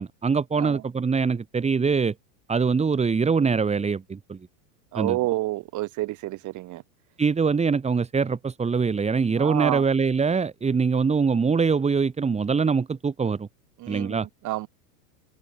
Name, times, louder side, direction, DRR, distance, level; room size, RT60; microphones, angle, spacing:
voice 1, 0.0-2.1 2.5-4.4 4.9-5.2 7.2-13.5 13.9-14.3, right 5 dB, 15° right, 3.8 m, -23 dB
voice 2, 4.9-6.8 9.4-9.8 13.8-14.7, right 17 dB, 35° right, 3.5 m, -29 dB
supercardioid pair, 140°, 48 cm